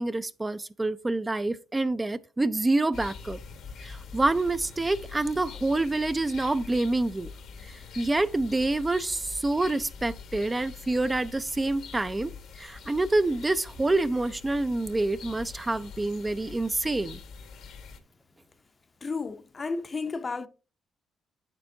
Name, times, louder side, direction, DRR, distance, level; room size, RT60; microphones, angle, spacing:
voice 1, 0.0-3.4 3.8-7.3 7.6-12.3 12.6-17.2, right 2 dB, 20° right, 0.4 m, -27 dB
sound 1, 2.9-18.0, left 5 dB, 75° left, 1.3 m, -44 dB
voice 2, 19.0-20.5, left 4 dB, 30° left, 0.6 m, -32 dB
8.6 x 7.5 x 2.7 m
cardioid pair, 90°, 0 cm